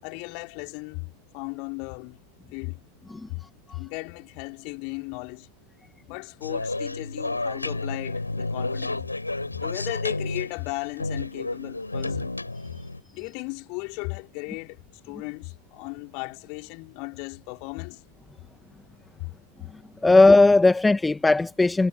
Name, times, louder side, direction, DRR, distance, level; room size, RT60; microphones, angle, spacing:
voice 1, 0.0-2.2 2.5-2.8 3.3-3.4 3.7-5.5 6.1-9.1 9.6-12.4 13.1-14.8 15.0-18.0 19.2-19.3, left 37 dB, 45° left, 5.1 m, -36 dB
sound 1, 6.4-13.0, left 2 dB, 85° left, 4.8 m, -31 dB
voice 2, 20.0-21.9, left 3 dB, 10° left, 1.6 m, -17 dB
figure-of-eight pair, 90°, 0 cm